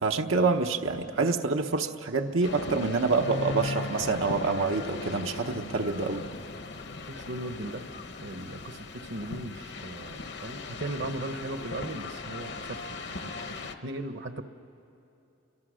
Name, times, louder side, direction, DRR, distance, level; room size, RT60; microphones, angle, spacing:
voice 1, 0.0-6.2, right 4 dB, 85° right, 4 dB, 1.0 m, -27 dB
sound 1, 2.4-13.8, left 3 dB, 60° left, 1.1 m, -38 dB
voice 2, 7.1-7.8 8.2-12.8 13.5-14.4, right 2 dB, 60° right, 10 dB, 1.0 m, -37 dB
29.5 x 23.5 x 6.4 m, 2.9 s
head